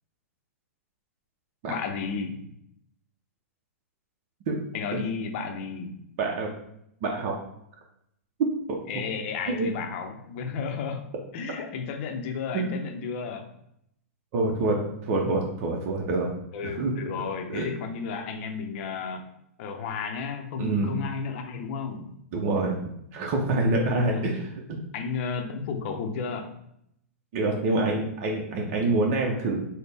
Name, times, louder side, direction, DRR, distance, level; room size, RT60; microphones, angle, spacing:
voice 1, 1.7-2.5 4.7-6.0 8.9-13.5 16.5-19.2 19.6-22.1 23.8-24.2 24.9-26.5, left 5 dB, 50° left, 5 dB, 0.6 m, -33 dB
voice 2, 6.2-6.5 7.0-7.4 8.7-8.8 9.5-9.7 12.5-12.8 14.3-16.3 16.6-16.9 17.5-17.7 20.6-20.9 22.3-22.8 23.1-24.8 27.3-29.7, right 2 dB, 50° right, 0 dB, 0.6 m, -26 dB
4.0 x 2.1 x 3.4 m, 0.75 s
hypercardioid pair, 115°, 8 cm